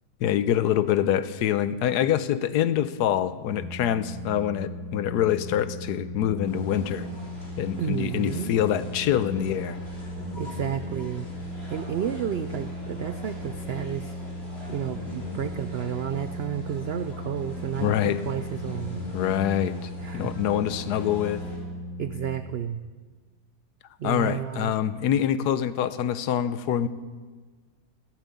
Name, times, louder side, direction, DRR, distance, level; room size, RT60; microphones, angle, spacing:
voice 1, 0.2-7.1 7.6-9.8 17.8-18.2 19.1-21.4 24.0-26.9, left 10 dB, 85° left, 14 dB, 1.2 m, -25 dB
sound 1, 3.5-22.4, left 1 dB, 65° left, 2.3 m, -37 dB
sound 2, 6.4-21.6, equal, 40° left, 3.7 m, -46 dB
voice 2, 7.8-8.5 10.4-11.3 11.7-14.1 14.7-19.0 20.0-20.3 22.0-22.8 24.0-24.7, right 9 dB, 85° right, 11 dB, 0.5 m, -31 dB
15.5 x 9.2 x 8.4 m, 1.4 s
omnidirectional pair, 1.7 m